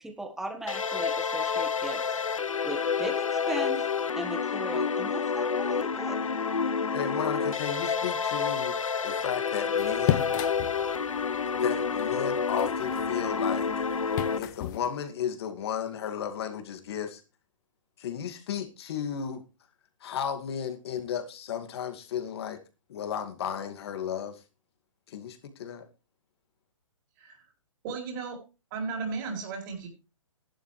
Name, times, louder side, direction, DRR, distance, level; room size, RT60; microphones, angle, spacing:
voice 1, 0.0-2.2 2.6-3.9 4.1-6.2, right 1 dB, 5° right, 1.6 m, -37 dB
sound 1, 0.7-14.4, left 6 dB, 85° left, 1.0 m, -29 dB
voice 2, 6.9-10.4 11.6-13.7 14.4-17.2 18.0-19.4 20.0-22.6 22.9-24.4 25.1-25.8, left 8 dB, 55° left, 2.4 m, -34 dB
sound 2, 9.7-14.8, left 14 dB, 35° left, 0.7 m, -35 dB
voice 3, 27.8-28.4 28.7-29.9, right 4 dB, 40° right, 4.2 m, -35 dB
13.5 x 11.5 x 3.3 m
hypercardioid pair, 135°, 17 cm